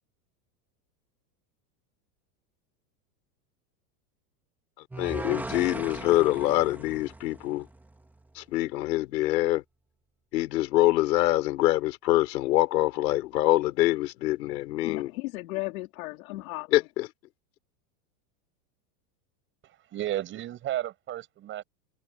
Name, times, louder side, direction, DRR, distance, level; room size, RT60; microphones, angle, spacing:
sound 1, 4.9-8.1, right 2 dB, 5° right, 2.6 m, -38 dB
voice 1, 5.0-7.7 8.4-9.6 10.3-15.1 16.7-17.1, left 16 dB, 90° left, 5.3 m, -25 dB
voice 2, 14.8-16.9, left 21 dB, 60° left, 3.8 m, -35 dB
voice 3, 19.6-21.6, right 13 dB, 25° right, 6.9 m, -33 dB
supercardioid pair, 180°, 48 cm